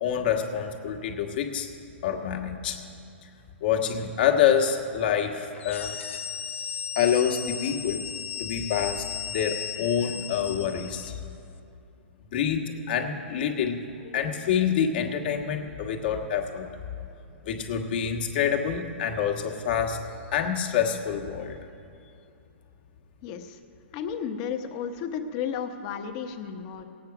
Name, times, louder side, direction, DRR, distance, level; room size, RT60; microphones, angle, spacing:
voice 1, 0.0-1.7 2.0-2.8 3.6-6.0 6.9-8.0 8.4-9.1 9.3-11.1 12.3-16.7 17.4-20.0 20.3-21.6, left 8 dB, 50° left, 2 dB, 1.4 m, -26 dB
sound 1, 5.5-11.2, left 8 dB, 85° left, 0.9 m, -36 dB
voice 2, 23.2-23.6 23.9-26.8, left 7 dB, 35° left, 6 dB, 0.9 m, -33 dB
17.5 x 8.6 x 5.9 m, 2.7 s
hypercardioid pair, 160°, 7 cm